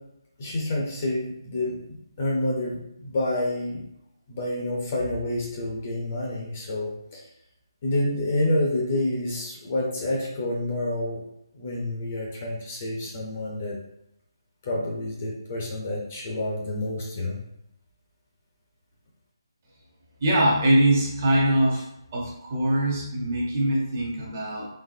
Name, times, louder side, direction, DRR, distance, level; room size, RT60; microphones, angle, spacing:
voice 1, 0.4-3.8 4.3-7.2 7.8-11.2 11.5-13.8 14.6-17.4, left 1 dB, 25° left, -2 dB, 0.6 m, -28 dB
voice 2, 20.2-21.9 22.1-24.7, right 1 dB, 25° right, -3 dB, 0.8 m, -22 dB
3.9 x 3.4 x 2.6 m, 0.81 s
hypercardioid pair, 175°, 2 cm